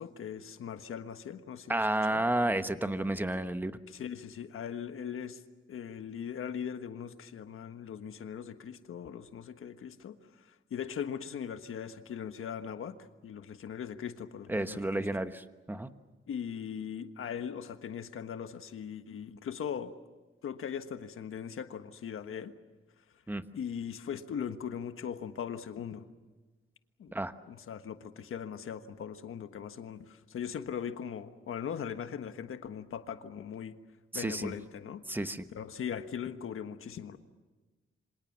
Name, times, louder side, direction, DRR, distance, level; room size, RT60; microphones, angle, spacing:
voice 1, 0.0-1.8 2.1-2.2 3.9-5.4 5.7-10.2 10.7-13.0 13.2-14.8 16.3-19.9 20.4-22.5 23.5-26.1 27.0-27.1 27.5-33.8 34.1-35.2 35.5-37.2, left 8 dB, 85° left, 9 dB, 1.4 m, -39 dB
voice 2, 1.7-3.7 14.5-15.9 23.3-23.4 27.1-27.3 34.1-34.5 35.1-35.4, right 1 dB, 10° right, 10 dB, 1.1 m, -31 dB
27.5 x 26.0 x 7.3 m, 1.2 s
wide cardioid pair, 130°, 21 cm